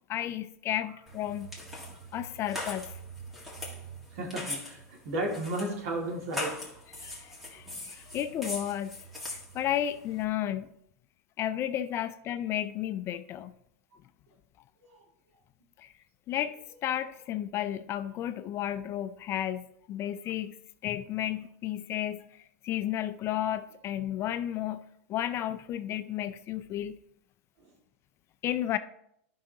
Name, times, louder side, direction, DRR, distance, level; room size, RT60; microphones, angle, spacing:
voice 1, 0.1-1.5 2.1-2.9 6.9-9.0 9.3-10.7 11.4-13.5 15.8-15.9 16.3-20.6 20.8-24.8 25.1-27.0 28.4-28.8, left 11 dB, 30° left, 0.4 m, -33 dB
sound 1, 1.1-10.2, left 1 dB, 5° right, 1.7 m, -41 dB
voice 2, 4.1-6.5 14.9-15.0, right 1 dB, 70° right, 2.1 m, -33 dB
11.5 x 5.6 x 2.8 m
supercardioid pair, 135°, 8 cm